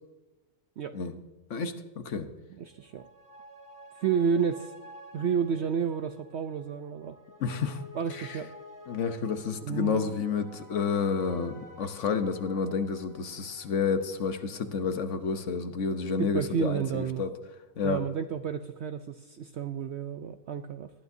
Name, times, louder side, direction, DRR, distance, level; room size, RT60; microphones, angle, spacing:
voice 1, 1.5-2.3 7.4-7.8 8.1-8.4 8.9-17.3 17.8-18.0, left 5 dB, 60° left, 9 dB, 1.1 m, -30 dB
sound 1, 2.6-15.5 15.8-15.9, equal, 10° right, 2.1 m, -51 dB
voice 2, 2.6-3.1 4.0-4.7 5.1-7.2 7.9-8.5 9.6-10.1 16.2-17.2 17.8-20.9, right 7 dB, 70° right, 9 dB, 0.6 m, -31 dB
19.5 x 12.0 x 2.7 m, 1.2 s
omnidirectional pair, 1.6 m